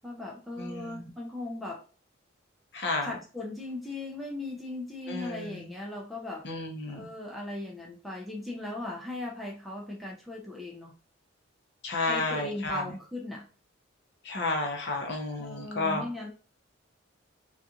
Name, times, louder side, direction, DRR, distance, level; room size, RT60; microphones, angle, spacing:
voice 1, 0.0-1.8 3.0-6.5 6.9-10.9 12.1-13.5 15.4-16.3, left 2 dB, ahead, -2 dB, 0.4 m, -38 dB
voice 2, 0.6-1.0 2.7-3.1 5.1-5.7 6.4-7.1 11.8-12.8 14.2-16.0, left 2 dB, 55° left, 1 dB, 0.7 m, -32 dB
2.4 x 2.3 x 2.7 m, 0.37 s
head